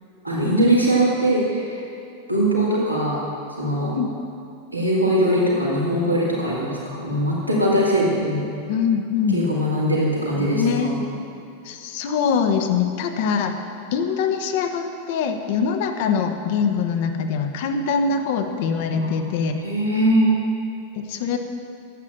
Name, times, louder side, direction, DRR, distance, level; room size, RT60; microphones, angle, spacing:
voice 1, 0.2-1.8 2.3-3.2 3.6-3.9 4.7-8.4 9.3-11.0 19.0-19.1 19.6-20.3, equal, 90° right, -6 dB, 2.6 m, -21 dB
voice 2, 8.7-9.4 10.4-10.9 11.7-13.5 13.9-19.5 21.1-21.4, left 6 dB, 50° left, 6 dB, 1.1 m, -23 dB
11.5 x 8.5 x 6.7 m, 2.7 s
figure-of-eight pair, 90°, 0 cm